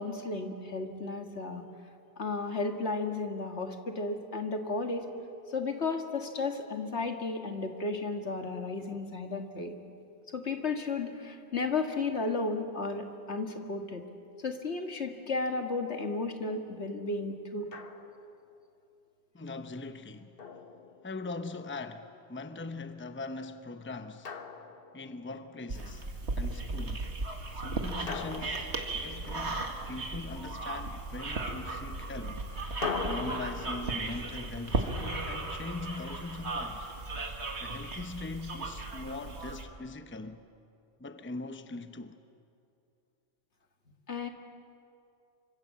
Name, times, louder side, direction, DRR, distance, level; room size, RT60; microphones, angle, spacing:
voice 1, 0.0-1.6 2.2-5.1 5.5-9.7 10.3-14.0 14.4-17.7 44.1-44.3, left 3 dB, 80° left, 2.1 m, -33 dB
Drum, 17.7-18.4 20.4-21.5 24.2-25.4 28.1-29.7 32.8-35.8, left 5 dB, 55° left, 1.3 m, -41 dB
voice 2, 19.3-20.4 21.0-24.4 24.9-27.2 27.5-32.4 33.1-36.9 37.6-40.4 41.0-42.2, left 3 dB, 10° left, 0.8 m, -41 dB
sound 1, 25.7-39.6, right 2 dB, 80° right, 2.2 m, -36 dB
27.5 x 25.0 x 7.5 m
omnidirectional pair, 1.1 m